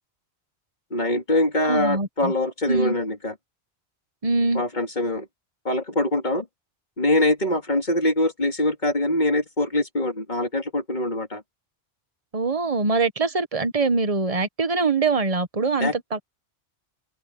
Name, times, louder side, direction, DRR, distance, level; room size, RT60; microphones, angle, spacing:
voice 1, 0.9-3.4 4.5-5.3 5.6-6.5 7.0-11.4 15.8-15.9, left 1 dB, 45° left, 2.7 m, -23 dB
voice 2, 1.7-2.3 2.7-2.9 4.2-4.6 12.3-16.3, right 3 dB, 35° right, 1.3 m, -23 dB
open air
omnidirectional pair, 1.1 m